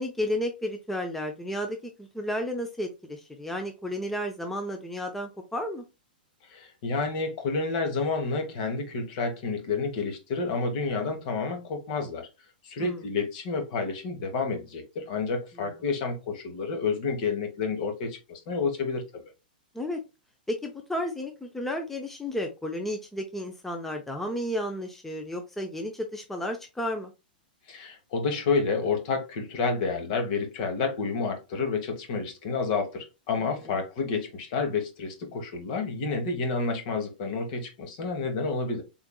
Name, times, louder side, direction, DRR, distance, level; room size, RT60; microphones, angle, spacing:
voice 1, 0.0-5.8 12.8-13.0 15.6-15.7 19.7-20.0 20.5-27.1 33.4-33.8, left 1 dB, 5° left, 0.5 m, -32 dB
voice 2, 6.5-12.3 12.6-19.2 27.7-38.8, left 4 dB, 50° left, 1.2 m, -29 dB
3.7 x 3.4 x 2.2 m
hypercardioid pair, 130°, 5 cm